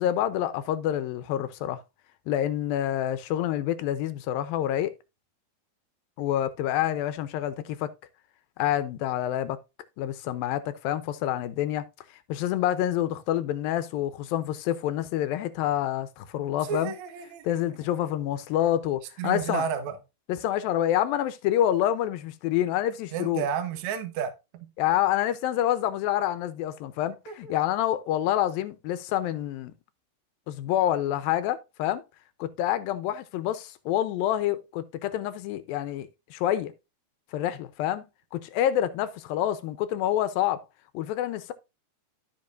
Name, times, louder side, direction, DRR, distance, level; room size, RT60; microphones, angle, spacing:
voice 1, 0.0-1.8 2.3-4.9 6.2-7.9 8.6-9.6 10.0-11.8 12.3-17.0 17.4-19.7 20.3-23.4 24.8-29.7 30.5-32.0 32.4-36.7 37.3-38.0 38.3-40.6 40.9-41.5, left 12 dB, 85° left, 2.5 m, -27 dB
voice 2, 16.7-17.6 19.2-20.0 23.1-24.7 27.3-27.5, right 8 dB, 60° right, 2.2 m, -32 dB
15.0 x 5.2 x 2.6 m
omnidirectional pair, 4.3 m